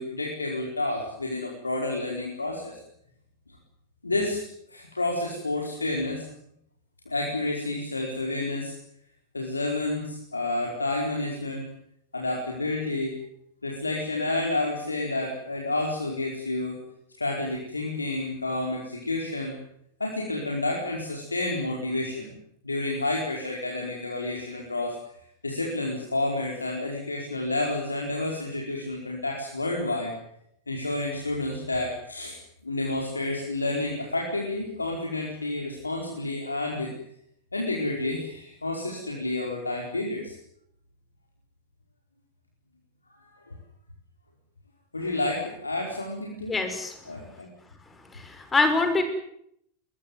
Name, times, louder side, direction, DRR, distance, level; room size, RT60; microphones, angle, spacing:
voice 1, 0.0-2.8 4.0-4.4 4.7-6.2 7.0-8.7 9.3-11.7 12.1-13.2 13.6-16.8 17.2-19.6 20.0-22.3 22.6-25.0 25.4-30.1 30.7-32.3 32.6-36.9 37.5-40.3 44.9-46.5 47.1-47.5, left 2 dB, 80° left, 0 dB, 4.7 m, -30 dB
voice 2, 46.5-46.9 48.1-49.0, left 3 dB, 15° left, 8 dB, 6.0 m, -24 dB
22.5 x 22.0 x 9.6 m, 0.73 s
figure-of-eight pair, 90°, 0 cm